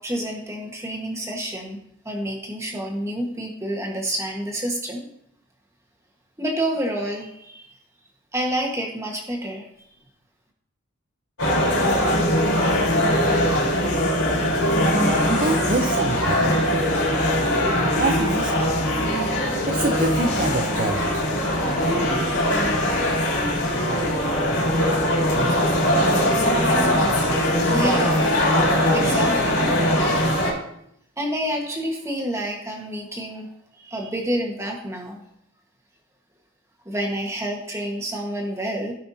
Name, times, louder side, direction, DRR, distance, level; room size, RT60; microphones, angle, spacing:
voice 1, 0.0-1.8 2.0-5.1 6.4-7.7 8.3-9.7 27.7-28.3 28.6-30.0 31.2-33.5 33.8-35.2 36.8-38.9, right 1 dB, 15° right, 0 dB, 1.3 m, -28 dB
sound 1, 11.4-30.5, equal, 85° left, 3.7 m, -21 dB
voice 2, 15.3-16.6 18.0-18.5 19.7-21.2, right 2 dB, 35° right, 2 dB, 0.6 m, -25 dB
16.0 x 5.7 x 2.7 m, 0.73 s
head